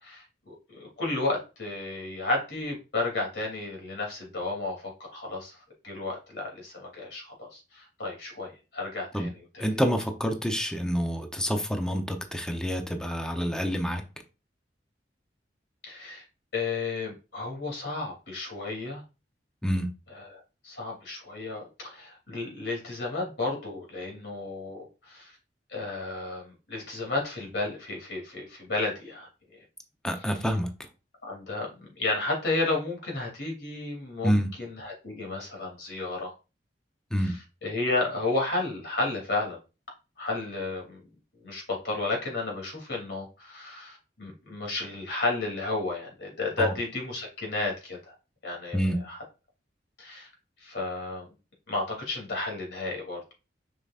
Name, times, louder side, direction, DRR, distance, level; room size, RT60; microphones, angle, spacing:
voice 1, 0.0-5.6 5.8-9.7 15.8-16.2 16.5-19.0 20.1-25.3 25.7-29.3 31.2-36.3 37.6-39.6 40.2-41.0 41.4-48.1 48.4-48.8 49.1-49.2 50.0-50.3 50.6-51.3 51.7-53.3, left 2 dB, 70° left, 3.0 m, -32 dB
voice 2, 9.6-14.0 19.6-19.9 30.0-30.7 34.2-34.5 37.1-37.3 46.6-46.7 48.7-49.0, equal, 5° left, 0.8 m, -27 dB
6.8 x 5.5 x 2.5 m
head